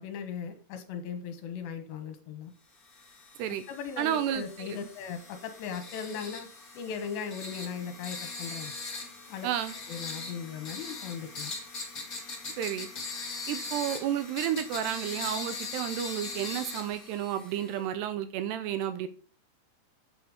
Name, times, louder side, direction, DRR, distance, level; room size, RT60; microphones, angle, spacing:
voice 1, 0.0-2.5 3.7-6.5 6.8-8.7 9.3-9.5 9.9-11.5, left 7 dB, 75° left, 8 dB, 3.5 m, -38 dB
sound 1, 2.9-17.8, left 3 dB, 35° left, 1.5 m, -41 dB
voice 2, 4.0-4.8 9.4-9.7 12.6-12.9 13.5-19.1, right 10 dB, 80° right, 11 dB, 2.7 m, -31 dB
8.8 x 8.2 x 5.0 m, 0.38 s
omnidirectional pair, 5.2 m